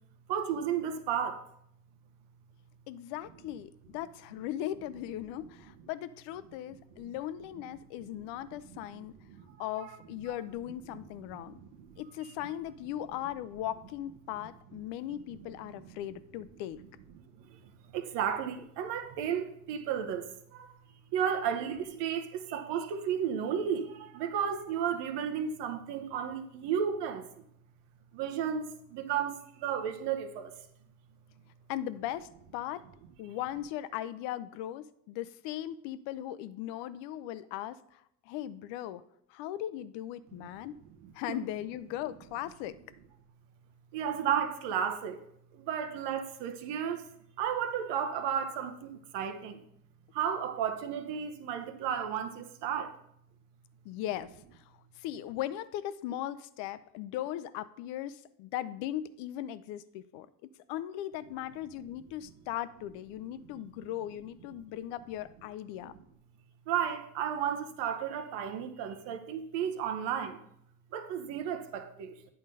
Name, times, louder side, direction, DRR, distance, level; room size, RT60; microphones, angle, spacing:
voice 1, 0.3-1.4 7.0-7.1 8.5-8.8 9.3-9.9 10.9-12.3 15.3-15.9 17.2-20.7 21.1-27.4 28.1-30.5 40.4-40.5 41.0-41.4 43.9-45.2 45.5-47.1 47.4-49.6 50.1-52.9 63.4-63.6 65.8-65.9 66.7-70.4 70.9-72.2, right 8 dB, 65° right, 1.0 m, -34 dB
voice 2, 2.9-9.1 9.6-11.6 12.0-16.8 31.7-32.8 33.2-37.8 38.3-39.0 39.3-40.7 41.1-42.7 53.8-54.3 55.0-60.3 60.7-65.9, left 12 dB, 70° left, 0.6 m, -38 dB
8.6 x 3.9 x 5.3 m
hypercardioid pair, 65°, 45 cm